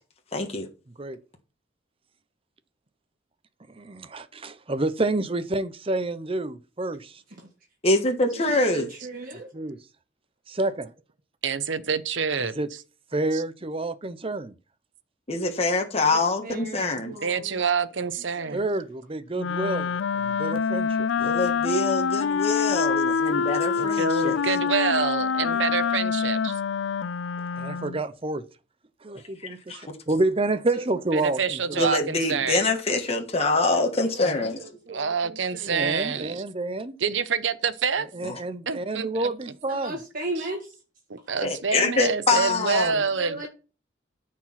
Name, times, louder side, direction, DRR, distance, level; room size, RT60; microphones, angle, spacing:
voice 1, 0.3-0.7 7.8-8.9 15.3-17.2 21.2-24.4 29.7-29.8 31.8-34.6 38.2-38.3 41.4-43.0, left 2 dB, 35° left, 1.5 m, -25 dB
voice 2, 3.7-7.2 9.5-9.8 10.5-10.9 12.4-12.7 13.1-14.5 18.5-21.1 27.5-28.4 29.0-31.9 35.7-37.0 38.1-40.0, right 2 dB, 30° right, 0.8 m, -29 dB
voice 3, 8.3-9.5 15.9-17.6 18.4-18.6 23.3-24.0 24.3-24.5 24.7-25.0 25.5-25.6 30.7-30.8 34.0-34.1 34.6-35.9 39.7-40.7 43.1-43.5, right 2 dB, 50° right, 1.8 m, -37 dB
voice 4, 11.4-12.5 13.3-13.4 17.2-18.6 23.8-26.6 31.1-32.6 34.9-36.4 37.0-38.1 38.7-39.3 40.4-40.5 41.1-43.5, right 5 dB, 80° right, 0.9 m, -27 dB
Wind instrument woodwind instrument, 19.4-28.0, left 6 dB, 80° left, 0.4 m, -26 dB
13.5 x 4.7 x 5.9 m
head